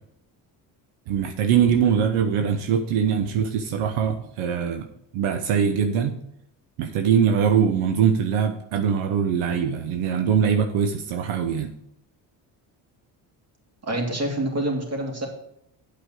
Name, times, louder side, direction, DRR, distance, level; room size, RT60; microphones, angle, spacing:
voice 1, 1.1-4.9 5.1-6.2 6.8-11.7, right 7 dB, 80° right, 7 dB, 0.9 m, -22 dB
voice 2, 13.8-15.3, right 1 dB, 30° right, 1 dB, 3.1 m, -26 dB
8.4 x 5.4 x 7.4 m, 0.76 s
supercardioid pair, 80°, 49 cm